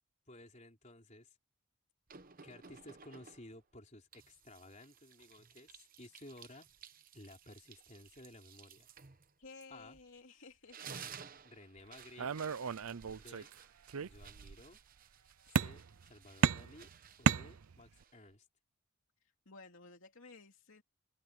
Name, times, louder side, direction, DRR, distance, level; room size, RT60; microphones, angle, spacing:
voice 1, 0.3-1.4 2.4-6.7 7.1-8.9 9.7-10.0 11.4-12.4 13.2-13.5 14.0-14.8 15.5-16.9 17.2-18.5, left 1 dB, 30° left, 4.2 m, -55 dB
sound 1, 2.1-3.6 4.1-10.2 10.5-18.4, right 7 dB, 40° right, 1.0 m, -56 dB
voice 2, 9.4-10.8 19.4-20.8, left 3 dB, 60° left, 2.9 m, -55 dB
sound 2, 12.2-13.5 13.9-14.6 15.6-16.1 16.4-18.0, right 6 dB, 75° right, 0.6 m, -34 dB
open air
head